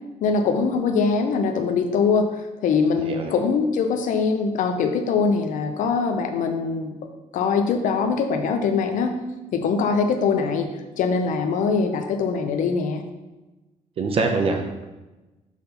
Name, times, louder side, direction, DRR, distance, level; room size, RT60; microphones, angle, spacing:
voice 1, 0.2-6.9 7.3-9.1 9.5-10.7 11.0-13.0, left 5 dB, 75° left, 6 dB, 0.7 m, -22 dB
voice 2, 3.0-3.3 14.0-14.8, right 3 dB, 45° right, 4 dB, 0.8 m, -24 dB
5.8 x 4.3 x 5.7 m, 1.1 s
cardioid pair, 160°, 13 cm